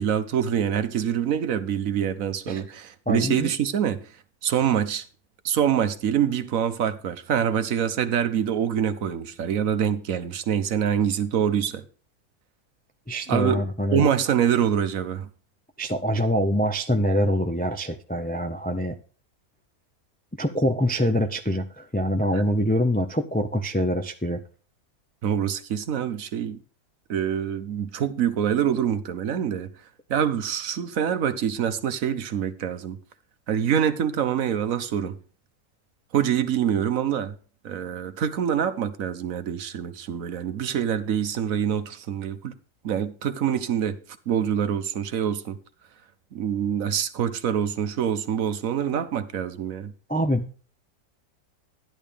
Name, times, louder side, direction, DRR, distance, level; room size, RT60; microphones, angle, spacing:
voice 1, 0.0-4.1 4.4-5.0 5.4-11.8 13.3-13.7 13.9-15.3 22.3-22.4 25.2-26.6 27.1-29.7 30.1-33.0 33.5-35.2 36.1-37.3 37.6-42.5 42.8-44.0 44.3-45.6 46.3-49.9, right 9 dB, 65° right, 1.2 m, -25 dB
voice 2, 3.1-3.5 13.1-14.0 15.8-19.0 20.4-24.4 50.1-50.5, equal, 15° left, 0.3 m, -24 dB
11.5 x 10.5 x 3.4 m
omnidirectional pair, 1.6 m